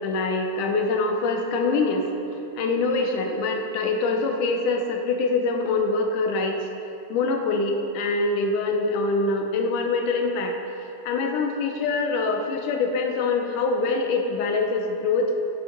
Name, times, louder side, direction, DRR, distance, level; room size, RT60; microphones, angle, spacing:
voice 1, 0.0-2.1 2.5-6.6 7.1-10.6 11.0-15.3, left 3 dB, 75° left, 3 dB, 2.0 m, -24 dB
9.7 x 9.5 x 5.2 m, 2.8 s
omnidirectional pair, 4.3 m